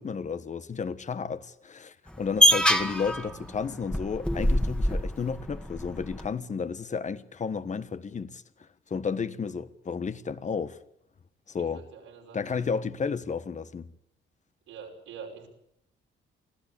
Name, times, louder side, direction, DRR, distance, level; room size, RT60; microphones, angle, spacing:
voice 1, 0.0-8.4 8.9-10.8 11.5-11.9 12.3-13.9, left 5 dB, 35° left, 1.4 m, -32 dB
sound 1, 2.1-6.3, equal, 5° left, 2.0 m, -25 dB
voice 2, 11.7-12.6 14.7-15.5, right 6 dB, 90° right, 5.7 m, -45 dB
25.0 x 15.0 x 8.6 m
cardioid pair, 90°, 20 cm